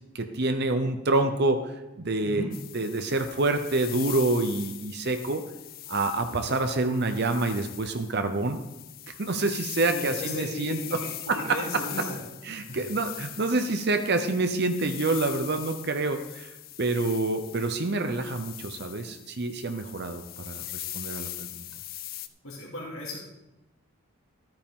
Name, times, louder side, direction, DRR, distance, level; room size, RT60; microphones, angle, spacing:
voice 1, 0.1-2.5 2.7-5.4 5.9-8.6 9.2-11.0 11.3-11.8 12.4-16.5 16.8-21.6, right 2 dB, 45° right, 7 dB, 0.7 m, -27 dB
voice 2, 2.2-2.5 9.9-11.1 11.3-12.2 12.7-12.8 22.4-23.2, left 1 dB, 70° left, -4 dB, 2.5 m, -36 dB
sound 1, 2.5-22.3, left 14 dB, 40° left, 0.4 m, -41 dB
13.5 x 8.9 x 3.8 m, 0.98 s
head